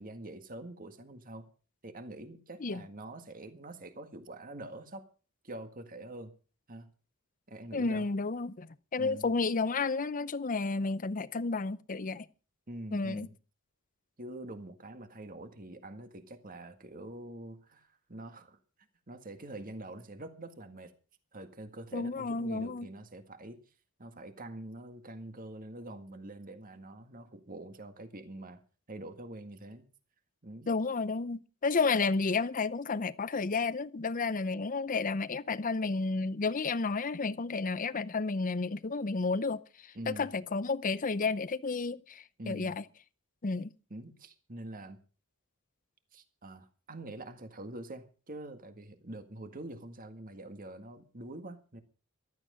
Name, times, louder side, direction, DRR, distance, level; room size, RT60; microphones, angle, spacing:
voice 1, 0.0-1.5 1.8-5.1 5.4-6.3 6.7-6.9 7.5-8.1 9.0-9.3 12.7-13.3 14.2-18.6 19.1-20.9 21.3-23.6 24.0-28.6 28.9-29.9 30.4-30.7 40.0-40.3 42.4-42.8 43.9-45.0 46.1-51.8, right 1 dB, 40° right, 1.9 m, -45 dB
voice 2, 7.7-12.2 12.9-13.3 21.9-22.9 30.7-39.6 40.1-42.8 43.4-43.7, left 4 dB, 40° left, 0.6 m, -31 dB
15.0 x 13.0 x 5.1 m
head